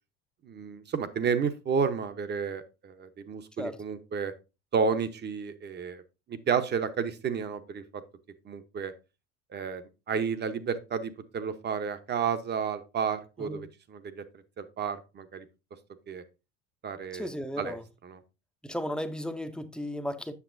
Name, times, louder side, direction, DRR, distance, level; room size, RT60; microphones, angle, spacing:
voice 1, 0.4-4.3 4.7-6.0 6.3-7.8 8.4-8.9 9.5-9.8 10.1-14.2 14.6-15.5 16.1-16.2 16.8-17.3 17.6-17.8 18.0-18.2, right 6 dB, 30° right, 0.8 m, -31 dB
voice 2, 17.1-17.8 18.6-20.3, equal, 5° left, 0.6 m, -35 dB
8.3 x 6.7 x 2.6 m
cardioid pair, 130°, 33 cm